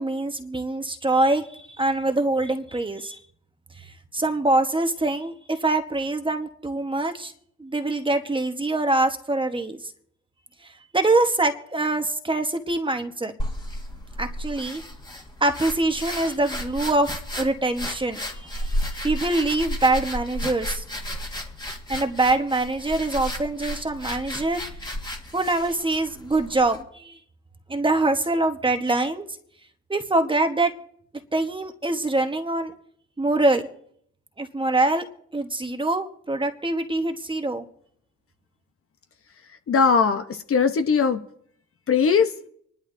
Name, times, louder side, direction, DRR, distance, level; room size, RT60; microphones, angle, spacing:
voice 1, 0.0-3.2 4.1-7.3 7.6-9.8 10.9-13.3 14.2-14.8 15.4-20.8 21.9-24.6 25.3-27.1 27.7-29.3 29.9-30.7 31.3-32.7 33.2-33.7 34.4-35.0 35.3-37.7, right 2 dB, 15° right, 1.2 m, -24 dB
sound 1, 13.4-26.8, equal, 15° left, 1.7 m, -33 dB
voice 2, 39.7-41.2 41.9-42.3, left 5 dB, 45° left, 0.9 m, -20 dB
26.0 x 11.0 x 2.7 m
cardioid pair, 90°, 30 cm